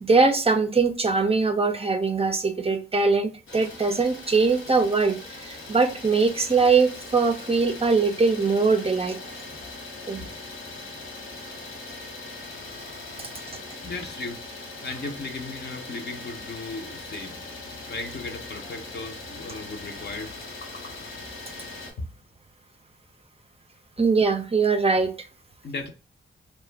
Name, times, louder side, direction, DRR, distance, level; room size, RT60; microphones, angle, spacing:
voice 1, 0.0-5.2 5.4-9.2 10.1-10.2 24.0-25.1, right 4 dB, 30° right, 0.5 m, -22 dB
Idling, 3.5-21.9, left 2 dB, 85° left, 0.8 m, -40 dB
voice 2, 13.8-14.4 14.8-17.4 17.9-20.3 20.6-20.9 25.6-25.9, left 3 dB, 55° left, 0.6 m, -36 dB
2.4 x 2.1 x 3.2 m
cardioid pair, 55°, 20 cm